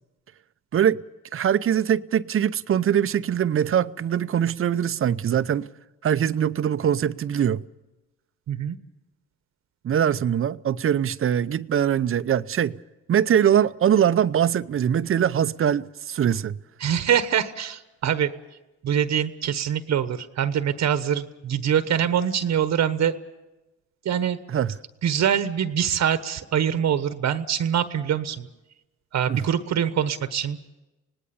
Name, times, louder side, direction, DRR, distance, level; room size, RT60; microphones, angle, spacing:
voice 1, 1.3-5.7 6.0-7.6 9.8-12.8 13.1-16.6 24.5-24.8 29.3-29.4, right 9 dB, 45° right, 0.7 m, -22 dB
voice 2, 16.8-18.3 18.8-23.1 24.0-24.4 25.0-28.5 29.1-30.7, right 9 dB, 65° right, 1.2 m, -24 dB
25.5 x 19.0 x 7.1 m
cardioid pair, 90°, 30 cm